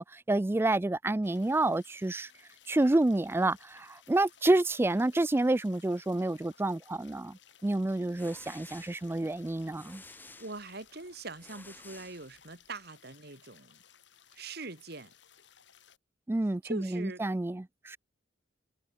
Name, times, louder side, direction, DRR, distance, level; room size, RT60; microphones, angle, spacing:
voice 1, 0.0-2.3 2.7-10.0 16.3-18.0, right 2 dB, 10° right, 0.3 m, -29 dB
sound 1, 1.2-16.0, left 9 dB, 70° left, 4.8 m, -60 dB
sound 2, 7.9-12.8, left 2 dB, 10° left, 2.5 m, -54 dB
voice 2, 10.4-13.8 14.3-15.1 16.6-17.2, right 3 dB, 55° right, 3.2 m, -42 dB
head